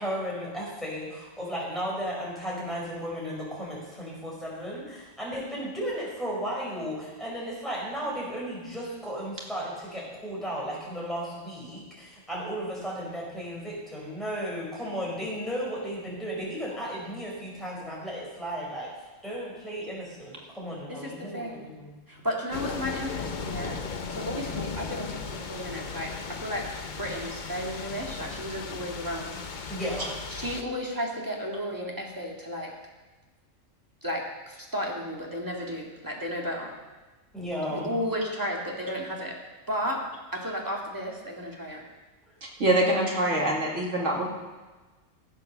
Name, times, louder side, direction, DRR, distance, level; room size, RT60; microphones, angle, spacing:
voice 1, 0.0-18.9 19.2-22.2 29.7-30.1 37.3-38.0, equal, ahead, -6 dB, 5.2 m, -34 dB
voice 2, 20.9-21.7 22.1-23.8 24.1-26.6 27.0-29.7 30.3-32.7 34.0-36.7 37.7-39.4 39.7-40.0 40.3-41.8, equal, 15° right, -2 dB, 2.2 m, -33 dB
sound 1, 22.5-30.6, left 5 dB, 45° left, 0.8 m, -36 dB
voice 3, 42.6-44.3, right 1 dB, 70° right, -1 dB, 2.5 m, -24 dB
15.0 x 8.1 x 6.7 m, 1.2 s
omnidirectional pair, 1.3 m